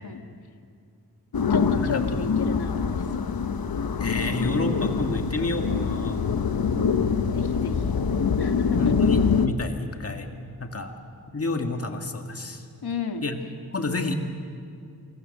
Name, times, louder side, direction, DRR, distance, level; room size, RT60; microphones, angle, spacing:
sound 1, 1.3-9.5, left 5 dB, 70° left, 1.1 m, -24 dB
voice 1, 1.5-3.2 7.3-7.9 8.4-8.9 12.8-13.2, left 5 dB, 90° left, 5 dB, 1.9 m, -32 dB
voice 2, 4.0-6.3 8.8-10.3 10.6-10.9 11.3-12.7 13.2-13.4 13.7-14.1, left 2 dB, 40° left, 4 dB, 1.9 m, -29 dB
28.0 x 22.5 x 6.6 m, 2.4 s
wide cardioid pair, 120°, 37 cm